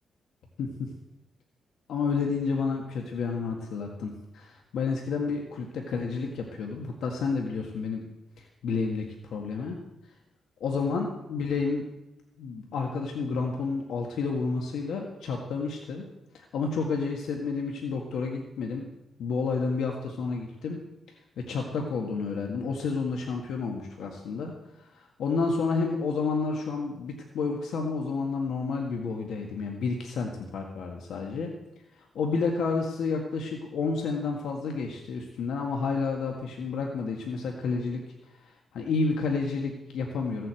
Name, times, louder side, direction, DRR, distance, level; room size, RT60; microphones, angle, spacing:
voice 1, 0.6-0.9 1.9-8.0 8.4-9.8 10.6-11.8 12.4-16.1 16.3-18.9 19.2-20.8 21.4-31.5 32.0-38.0 38.4-40.5, left 4 dB, 85° left, 1 dB, 1.7 m, -30 dB
16.5 x 7.7 x 7.7 m, 0.94 s
cardioid pair, 120°, 0 cm